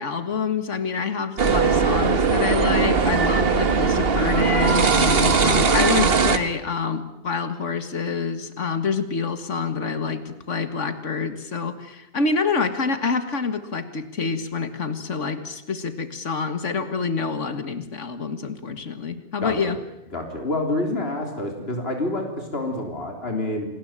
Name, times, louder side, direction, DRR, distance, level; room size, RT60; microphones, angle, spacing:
voice 1, 0.0-19.8, left 5 dB, 85° left, 10 dB, 2.1 m, -27 dB
sound 1, 1.4-6.4, right 5 dB, 55° right, 1.6 m, -19 dB
voice 2, 19.4-19.7 20.1-23.7, left 2 dB, 55° left, 3 dB, 3.9 m, -28 dB
28.0 x 20.0 x 9.0 m, 0.81 s
omnidirectional pair, 1.2 m